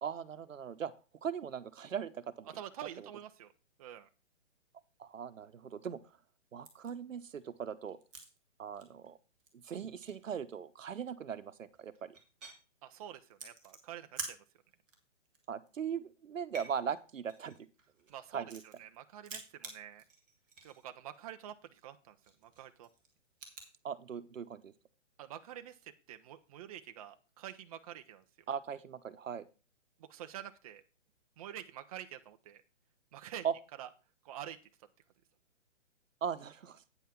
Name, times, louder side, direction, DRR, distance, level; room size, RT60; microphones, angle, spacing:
voice 1, 0.0-0.9 1.2-2.5 5.0-6.0 6.5-8.0 8.6-9.2 9.6-12.1 15.5-17.6 18.3-18.6 23.8-24.7 28.5-29.5 33.4-33.5 36.2-36.8, right 7 dB, 80° right, 12 dB, 1.1 m, -39 dB
voice 2, 2.5-3.5 3.8-4.1 12.8-14.4 18.1-20.0 20.6-22.2 22.4-22.9 25.2-28.2 30.0-30.8 31.4-32.6 33.1-33.4 33.8-33.9 34.2-34.6, right 11 dB, 30° right, 7 dB, 0.7 m, -47 dB
sound 1, 6.6-6.9 7.4-8.4 8.7-9.1 9.4-9.5 9.7-10.3 11.3-11.4 11.7-12.6 13.3-14.4 14.7-14.9 15.2-15.9 16.3-18.9 19.2-20.9 21.1-21.2 21.6-21.8 22.2-23.7, right 3 dB, ahead, 0.4 m, -48 dB
9.1 x 5.6 x 5.8 m, 0.33 s
hypercardioid pair, 150°, 38 cm